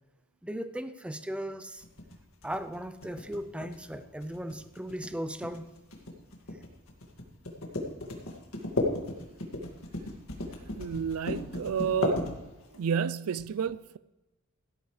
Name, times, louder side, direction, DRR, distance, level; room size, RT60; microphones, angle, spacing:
voice 1, 0.4-1.8 2.4-5.7, equal, 5° right, 0.5 m, -37 dB
sound 1, 1.8-12.8, left 2 dB, 65° left, 2.1 m, -35 dB
voice 2, 10.7-12.5 12.7-14.0, right 7 dB, 75° right, 0.4 m, -31 dB
16.5 x 12.5 x 3.3 m
head